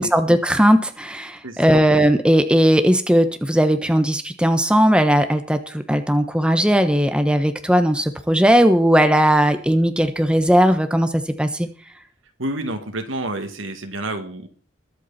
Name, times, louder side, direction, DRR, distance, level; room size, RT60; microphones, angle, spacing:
voice 1, 0.0-11.1 11.4-11.7, equal, 5° right, 8 dB, 1.1 m, -17 dB
voice 2, 1.4-1.8 12.4-14.5, right 1 dB, 85° right, 7 dB, 2.4 m, -29 dB
21.5 x 8.3 x 4.4 m, 0.40 s
head